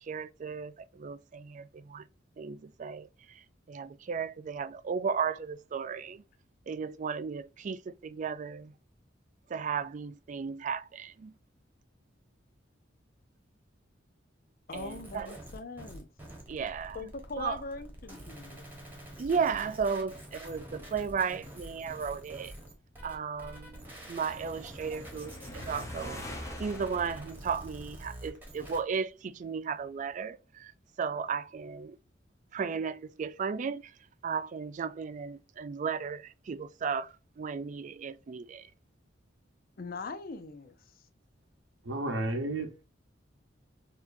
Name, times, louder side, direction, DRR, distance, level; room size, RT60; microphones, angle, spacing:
voice 1, 0.1-2.0 2.4-3.1 3.7-6.2 6.7-8.7 9.5-11.3 14.7-15.3 16.5-17.0 17.4-17.6 19.2-22.5 23.0-26.2 26.6-30.7 31.0-32.0 32.5-33.8 34.2-38.7, right 6 dB, 40° right, 0.3 m, -35 dB
voice 2, 14.7-16.1 16.9-18.6 39.8-40.9, left 3 dB, 50° left, 0.6 m, -41 dB
sound 1, 14.7-28.8, right 1 dB, 10° right, 1.2 m, -47 dB
sound 2, 23.2-28.5, left 1 dB, 15° left, 0.7 m, -45 dB
voice 3, 41.8-42.8, right 2 dB, 90° right, 0.9 m, -32 dB
4.4 x 2.8 x 2.5 m
head